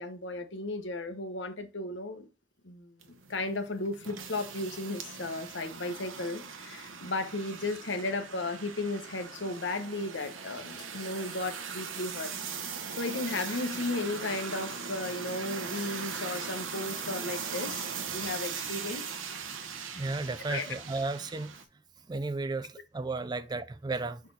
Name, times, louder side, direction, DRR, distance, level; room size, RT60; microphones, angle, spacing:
voice 1, 0.0-2.3 2.6-2.9 3.3-12.3 13.0-19.0 20.5-20.7, left 2 dB, 70° left, 1.0 m, -35 dB
sound 1, 3.0-21.6, right 6 dB, 90° right, 1.1 m, -40 dB
voice 2, 19.9-21.5 22.1-24.2, right 3 dB, 20° right, 0.3 m, -34 dB
6.3 x 4.2 x 4.0 m
head